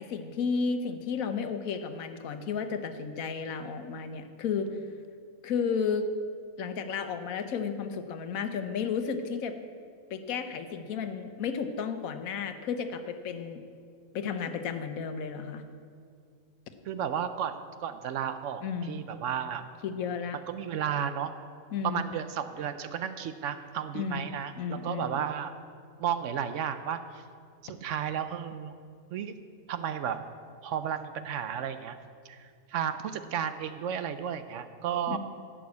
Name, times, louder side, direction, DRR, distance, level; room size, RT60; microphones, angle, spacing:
voice 1, 0.0-4.7 5.4-6.1 6.6-9.5 10.1-13.6 14.1-15.6 18.6-19.1 19.8-20.4 21.7-22.0 23.9-24.2 24.6-25.2 35.1-35.2, left 6 dB, 85° left, 8 dB, 1.2 m, -33 dB
voice 2, 16.9-19.7 20.5-21.3 21.8-25.5 26.0-27.2 27.6-28.7 29.1-29.4 29.7-30.2 30.6-32.0 32.2-35.2, right 8 dB, 70° right, 10 dB, 0.9 m, -33 dB
11.0 x 6.1 x 8.4 m, 2.2 s
omnidirectional pair, 1.5 m